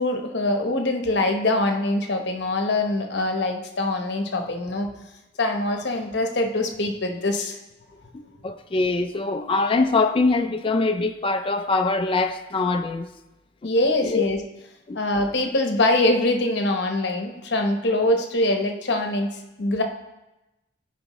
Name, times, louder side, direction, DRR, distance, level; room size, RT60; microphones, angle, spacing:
voice 1, 0.0-4.9 5.4-7.6 8.0-8.1 13.6-14.4 14.9-19.8, left 2 dB, 60° left, 0.9 m, -23 dB
voice 2, 8.1-13.1 14.0-14.2 14.9-15.0, left 3 dB, 30° left, 0.3 m, -23 dB
13.5 x 4.9 x 3.0 m
head